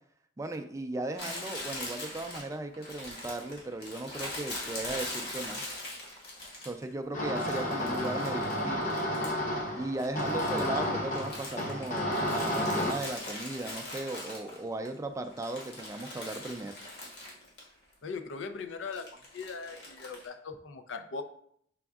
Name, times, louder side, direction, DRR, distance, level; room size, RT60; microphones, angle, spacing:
voice 1, 0.4-5.6 6.7-8.9 9.8-16.8, right 2 dB, 15° right, 6 dB, 0.4 m, -37 dB
Crumpling crinkling, 1.2-6.9 7.4-9.5 9.8-14.9 15.2-17.7 17.9-18.0 18.9-20.3, left 1 dB, 60° left, 1.5 m, -41 dB
sound 1, 7.1-12.9, left 1 dB, 45° left, 0.9 m, -31 dB
voice 2, 18.0-19.1 19.3-21.2, left 4 dB, 80° left, 8 dB, 0.5 m, -39 dB
6.0 x 3.5 x 2.4 m, 0.66 s
head